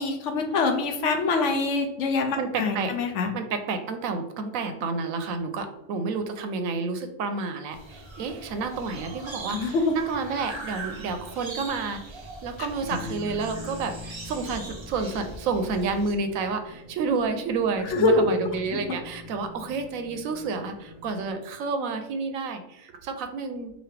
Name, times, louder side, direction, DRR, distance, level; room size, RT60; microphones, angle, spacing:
voice 1, 0.0-3.3 9.5-9.9 17.9-18.4 18.7-18.8, left 3 dB, 70° left, 5 dB, 0.9 m, -24 dB
voice 2, 2.4-2.9 3.3-23.7, right 4 dB, 90° right, 7 dB, 1.0 m, -30 dB
sound 1, 7.7-16.1, right 2 dB, 45° right, 0.3 m, -41 dB
sound 2, 12.7-21.3, left 3 dB, 45° left, 1.2 m, -44 dB
5.0 x 2.6 x 3.2 m, 0.90 s
omnidirectional pair, 1.4 m